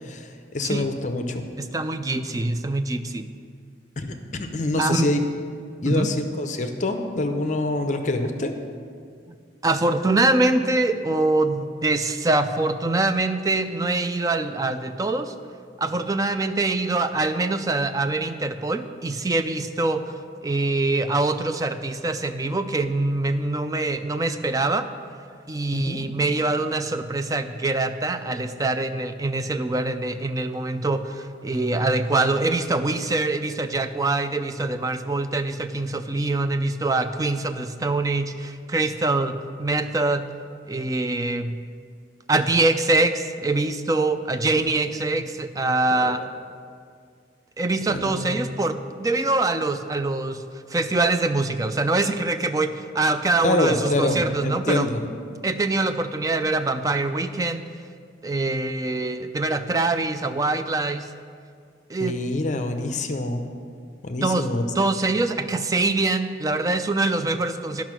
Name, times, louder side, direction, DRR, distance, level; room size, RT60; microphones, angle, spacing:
voice 1, 0.0-1.4 4.0-5.2 5.8-8.5 25.7-26.0 44.5-44.7 45.1-45.2 46.0-46.1 47.9-48.4 53.4-55.0 62.0-63.4 64.0-64.6, left 2 dB, 40° left, 6 dB, 0.6 m, -26 dB
voice 2, 1.6-3.3 4.8-5.1 5.9-6.1 9.3-9.4 9.6-15.3 15.8-20.0 20.4-24.8 25.5-40.2 40.7-41.6 42.3-46.2 47.6-50.4 50.7-54.9 55.4-57.7 58.2-61.1 61.9-62.2 64.2-64.5 64.8-67.8, right 2 dB, 20° right, 9 dB, 0.4 m, -24 dB
10.5 x 5.9 x 6.1 m, 2.2 s
head